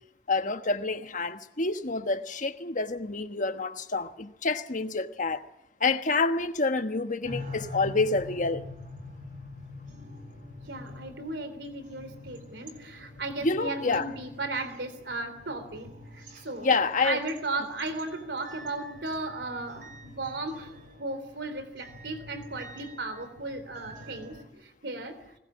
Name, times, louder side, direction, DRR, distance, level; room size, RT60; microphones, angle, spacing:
voice 1, 0.3-5.4 5.8-8.7 13.4-14.1 16.6-17.2, left 3 dB, 45° left, 1.3 m, -28 dB
sound 1, 7.2-24.4, left 2 dB, 55° right, 5.8 m, -45 dB
voice 2, 10.7-16.7 17.0-20.7 21.0-25.4, right 2 dB, 80° right, 3.4 m, -36 dB
21.0 x 20.0 x 8.7 m
head